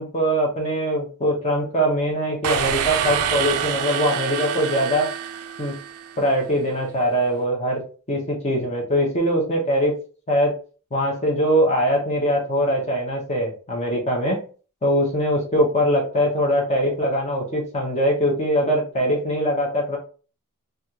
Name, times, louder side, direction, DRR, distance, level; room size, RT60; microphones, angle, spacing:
voice 1, 0.0-5.1 5.6-5.8 6.2-10.0 10.3-10.6 10.9-14.4 14.8-20.0, equal, 30° left, 0 dB, 0.8 m, -22 dB
sound 1, 2.4-6.2, right 8 dB, 90° right, 0.4 m, -26 dB
3.3 x 2.4 x 2.7 m, 0.37 s
head